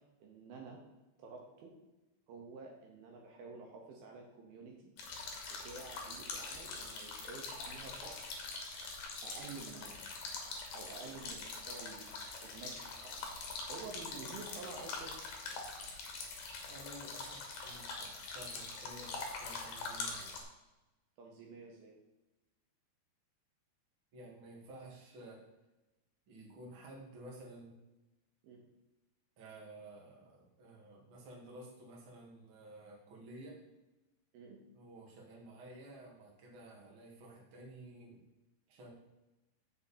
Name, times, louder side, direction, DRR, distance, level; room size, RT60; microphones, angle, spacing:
voice 1, 0.2-0.8 1.2-1.7 2.3-4.9 5.5-8.4 9.2-10.0 10.7-12.1 12.4-13.2 13.7-15.1 21.2-21.9 28.4-28.6 34.3-34.6, right 4 dB, 70° right, 0 dB, 2.8 m, -50 dB
sound 1, 5.0-20.4, left 3 dB, 60° left, 2.4 m, -44 dB
voice 2, 16.7-20.3 24.1-25.5 26.3-27.8 29.4-33.6 34.7-38.2 38.7-38.9, right 1 dB, 45° right, -2 dB, 2.0 m, -52 dB
7.7 x 6.7 x 4.2 m, 1.0 s
omnidirectional pair, 4.8 m